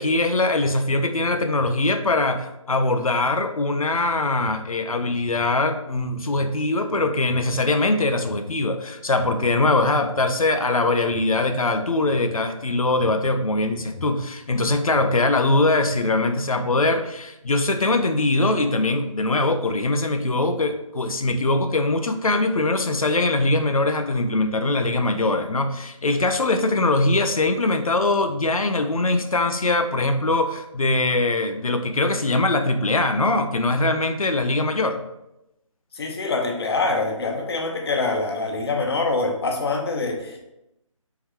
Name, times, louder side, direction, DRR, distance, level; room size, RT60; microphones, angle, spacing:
voice 1, 0.0-35.0, left 2 dB, 90° left, 7 dB, 0.6 m, -22 dB
voice 2, 35.9-40.4, left 3 dB, 45° left, 2 dB, 0.8 m, -25 dB
4.3 x 3.9 x 3.0 m, 0.88 s
figure-of-eight pair, 155°, 17 cm